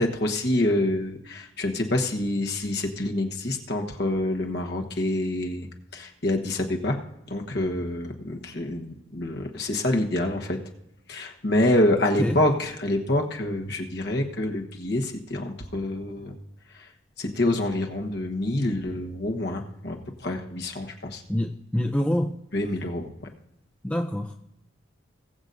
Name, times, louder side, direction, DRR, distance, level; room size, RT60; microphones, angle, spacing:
voice 1, 0.0-5.7 5.9-10.6 11.1-16.3 16.7-16.9 17.2-21.2 22.5-23.3, left 1 dB, 55° left, 2 dB, 1.3 m, -27 dB
voice 2, 21.3-22.4 23.8-24.4, left 1 dB, 5° left, 3 dB, 0.5 m, -26 dB
20.0 x 8.0 x 2.7 m, 0.84 s
head